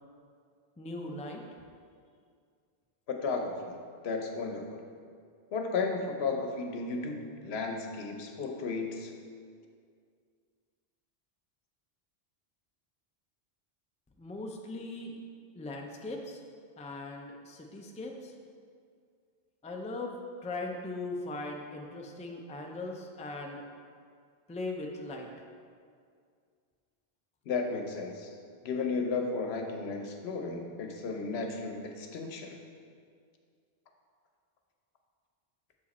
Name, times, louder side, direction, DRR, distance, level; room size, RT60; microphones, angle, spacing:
voice 1, 0.8-1.4 14.2-15.2 15.5-16.4 16.8-18.3 19.6-23.6 24.5-25.3, left 2 dB, 10° left, 1 dB, 0.3 m, -39 dB
voice 2, 3.1-3.8 4.0-4.8 5.5-9.1 27.5-28.4 28.6-32.6, left 4 dB, 85° left, 3 dB, 1.0 m, -34 dB
6.9 x 4.9 x 4.1 m, 2.2 s
omnidirectional pair, 1.0 m